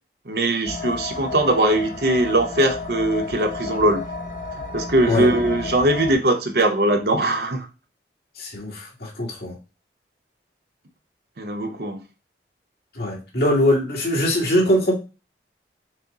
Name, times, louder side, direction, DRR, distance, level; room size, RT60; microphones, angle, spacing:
voice 1, 0.3-4.1 4.7-7.7 11.4-12.0, right 1 dB, 60° right, 4 dB, 0.8 m, -21 dB
sound 1, 0.7-6.1, left 3 dB, 45° left, 0.6 m, -32 dB
voice 2, 8.4-9.6 12.9-15.0, equal, 60° left, -2 dB, 1.8 m, -21 dB
6.2 x 2.1 x 4.0 m, 0.31 s
head